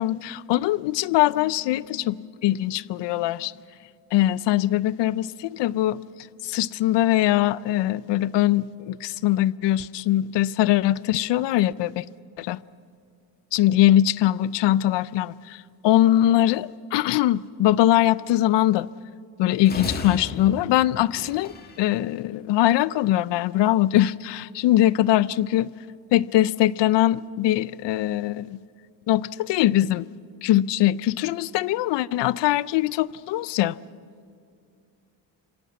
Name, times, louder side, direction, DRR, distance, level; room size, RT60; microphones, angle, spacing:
voice 1, 0.0-3.5 4.1-6.0 6.4-12.1 12.4-12.6 13.5-18.9 19.4-25.7 26.1-28.6 29.1-30.1 30.4-33.8, left 14 dB, 65° left, 0.5 m, -22 dB
sound 1, 19.7-21.9, left 3 dB, 20° left, 1.5 m, -35 dB
25.5 x 17.0 x 8.2 m
cardioid pair, 170°, 46 cm